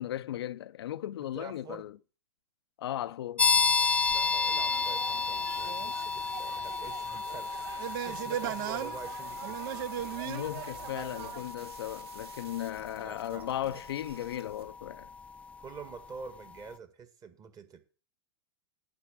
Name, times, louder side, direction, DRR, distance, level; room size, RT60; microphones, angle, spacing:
voice 1, 0.0-2.0 2.8-3.5 10.2-15.1, left 12 dB, 70° left, 0.5 m, -36 dB
voice 2, 1.3-1.9 4.1-9.8 13.0-13.8 15.6-17.8, right 5 dB, 25° right, 1.7 m, -47 dB
sound 1, 3.4-15.9, left 5 dB, 10° left, 0.4 m, -32 dB
sound 2, 3.5-14.6, right 7 dB, 70° right, 2.0 m, -53 dB
sound 3, 4.5-11.4, right 12 dB, 55° right, 0.6 m, -39 dB
8.8 x 6.3 x 7.3 m
hypercardioid pair, 105°, 14 cm